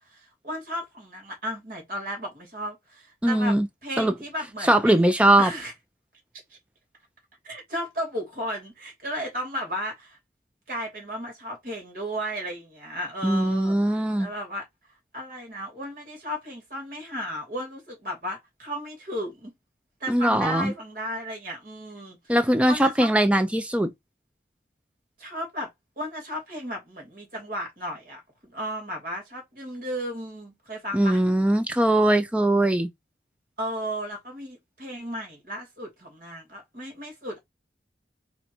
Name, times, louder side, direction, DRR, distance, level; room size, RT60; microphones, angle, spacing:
voice 1, 0.1-3.6 3.8-5.0 5.4-5.7 6.5-6.6 7.4-10.2 10.7-14.6 15.1-19.5 20.0-22.2 22.7-23.1 25.2-25.7 26.0-31.2 33.6-37.4, equal, 50° right, 2.7 m, -34 dB
voice 2, 3.2-3.7 4.0-4.1 4.6-5.5 13.2-14.3 20.1-20.7 22.3-23.9 30.9-32.9, right 1 dB, 5° right, 0.6 m, -21 dB
4.3 x 2.6 x 4.4 m
head